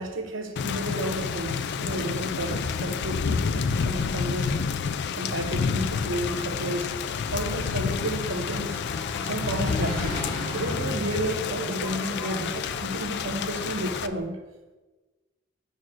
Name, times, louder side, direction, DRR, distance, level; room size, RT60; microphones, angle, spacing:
voice 1, 0.0-4.5 5.2-6.9 7.3-8.8 9.2-10.2 10.5-14.4, right 1 dB, 70° right, 4 dB, 0.9 m, -32 dB
Thunder / Rain, 0.6-14.1, left 6 dB, 60° left, 0.4 m, -29 dB
Engine, 5.6-14.2, left 1 dB, 25° left, 1.6 m, -38 dB
6.1 x 4.6 x 6.2 m, 1.2 s
head